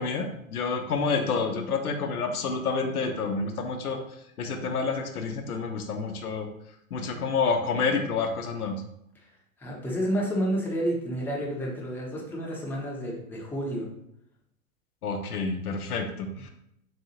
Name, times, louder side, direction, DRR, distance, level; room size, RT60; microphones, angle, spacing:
voice 1, 0.0-4.0 4.4-6.5 6.9-8.8 15.0-16.5, left 4 dB, 90° left, 4 dB, 0.7 m, -29 dB
voice 2, 9.6-13.9, equal, 5° left, -3 dB, 0.7 m, -30 dB
4.0 x 2.6 x 2.8 m, 0.77 s
hypercardioid pair, 105°, 43 cm